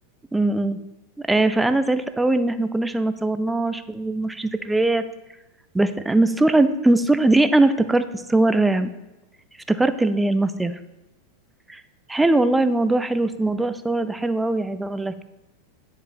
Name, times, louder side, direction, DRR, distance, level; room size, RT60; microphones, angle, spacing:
voice 1, 0.3-0.8 1.3-5.0 5.7-8.9 9.7-10.7 11.7-11.8 12.1-15.1, right 2 dB, 5° right, 11 dB, 0.4 m, -20 dB
9.8 x 4.8 x 2.7 m, 1.0 s
figure-of-eight pair, 90°, 0 cm